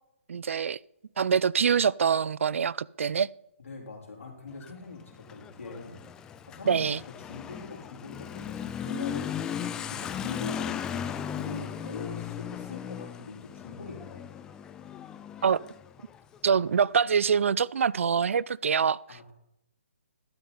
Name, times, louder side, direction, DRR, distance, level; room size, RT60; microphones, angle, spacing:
voice 1, 0.3-0.8 1.2-3.3 6.7-7.0 15.4-15.6 16.4-19.0, right 6 dB, 70° right, 0.4 m, -25 dB
voice 2, 3.6-6.1 6.5-9.6 9.9-14.2 19.1-19.3, left 4 dB, 75° left, 3.6 m, -42 dB
Motorcycle / Accelerating revving vroom, 4.5-16.8, left 9 dB, 10° left, 0.4 m, -37 dB
12.5 x 9.3 x 4.1 m
hypercardioid pair, 155°, 7 cm